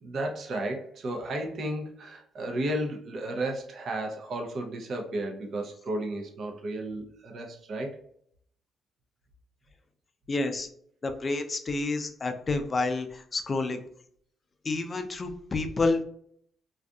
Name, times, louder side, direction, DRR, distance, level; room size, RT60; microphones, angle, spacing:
voice 1, 0.0-8.0, right 1 dB, 60° right, 3 dB, 0.6 m, -33 dB
voice 2, 10.3-10.7 11.0-13.8 14.6-16.0, left 3 dB, 35° left, 6 dB, 0.4 m, -29 dB
2.6 x 2.4 x 2.2 m, 0.66 s
cardioid pair, 90°, 0 cm